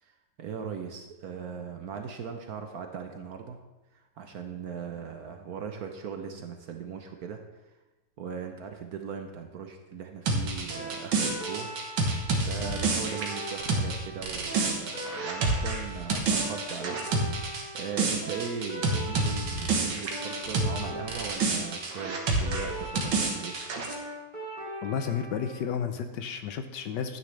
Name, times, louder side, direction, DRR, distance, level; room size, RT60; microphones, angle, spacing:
voice 1, 0.0-3.6 3.9-7.4 8.2-11.7 12.4-23.6, right 6 dB, 60° right, 5 dB, 1.1 m, -39 dB
sound 1, 10.3-20.8 21.1-23.9, right 3 dB, 80° right, 2.0 m, -29 dB
sound 2, 10.7-25.5, right 1 dB, 25° right, 2.5 m, -40 dB
voice 2, 24.8-27.2, left 7 dB, 70° left, 8 dB, 1.3 m, -32 dB
12.0 x 9.5 x 3.3 m, 1.1 s
omnidirectional pair, 2.1 m